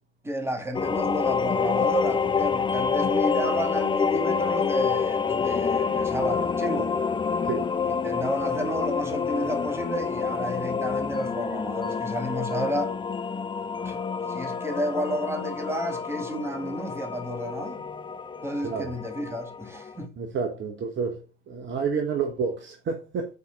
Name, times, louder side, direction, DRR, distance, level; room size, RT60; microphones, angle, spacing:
voice 1, 0.2-6.9 7.8-12.9 13.8-14.0 14.3-17.8 18.4-20.1, equal, 5° right, 2.2 m, -31 dB
sound 1, 0.7-20.0, left 6 dB, 15° left, 0.6 m, -28 dB
voice 2, 18.6-18.9 20.2-21.2 21.5-23.3, right 5 dB, 35° right, 1.3 m, -29 dB
9.0 x 4.4 x 3.7 m
hypercardioid pair, 75°, 34 cm